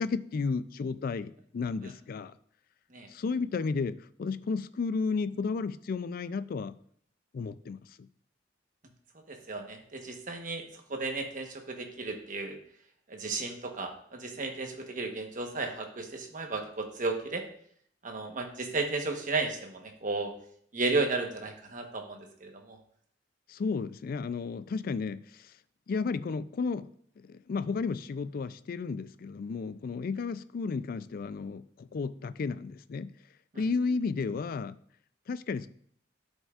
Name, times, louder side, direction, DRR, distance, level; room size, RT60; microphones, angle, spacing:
voice 1, 0.0-2.3 3.1-6.7 7.3-8.1 23.5-25.5 25.9-26.9 27.2-33.1 33.6-34.8 35.3-35.7, left 4 dB, 50° left, 15 dB, 0.3 m, -33 dB
voice 2, 9.3-12.6 13.1-17.4 18.0-20.3 20.7-22.8 33.5-33.6, right 3 dB, 45° right, 3 dB, 1.1 m, -34 dB
12.0 x 5.4 x 2.4 m, 0.63 s
head